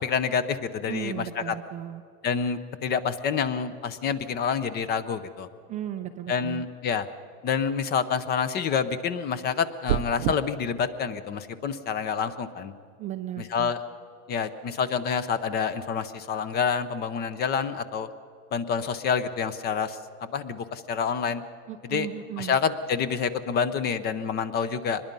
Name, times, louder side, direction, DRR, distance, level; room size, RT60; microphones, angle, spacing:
voice 1, 0.0-1.5 2.2-5.5 6.3-7.1 7.4-12.7 13.4-13.8 14.3-18.1 18.5-21.4 21.8-22.1 22.4-25.0, left 6 dB, 25° left, 14 dB, 0.7 m, -28 dB
voice 2, 0.9-2.0 5.7-6.7 13.0-13.7 21.7-22.6, right 11 dB, 20° right, 5 dB, 0.4 m, -35 dB
sound 1, 9.9-10.4, right 13 dB, 85° right, 0.8 m, -26 dB
24.0 x 21.0 x 5.4 m, 2.3 s
supercardioid pair, 150°, 42 cm